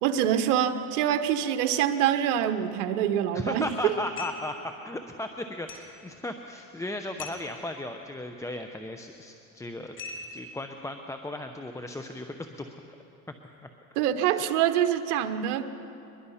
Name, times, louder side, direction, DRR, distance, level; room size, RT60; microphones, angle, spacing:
voice 1, 0.0-3.9 13.9-15.7, right 10 dB, 80° right, 9 dB, 1.4 m, -25 dB
voice 2, 3.3-10.0 10.3-12.8 14.3-14.4, left 1 dB, 5° left, 5 dB, 0.7 m, -36 dB
sound 1, 4.2-4.6 5.7-6.0 7.2-7.5 10.0-10.6, left 4 dB, 25° left, 2.5 m, -40 dB
22.5 x 22.0 x 5.7 m, 2.8 s
supercardioid pair, 120°, 44 cm